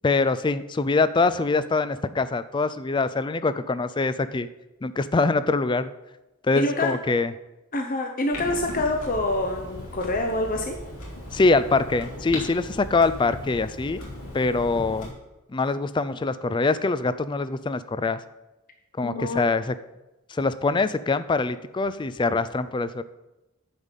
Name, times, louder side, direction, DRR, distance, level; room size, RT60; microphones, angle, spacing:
voice 1, 0.0-4.5 4.8-5.9 6.4-7.3 11.3-14.0 14.3-15.1 15.5-18.2 19.0-19.7 20.3-23.0, left 3 dB, 20° left, 14 dB, 0.3 m, -24 dB
voice 2, 6.5-6.9 7.7-10.7 19.0-19.5, left 2 dB, 40° left, 3 dB, 0.8 m, -26 dB
Clock, 8.3-15.1, left 1 dB, 75° left, 3.2 m, -38 dB
10.0 x 5.2 x 7.3 m, 1.0 s
head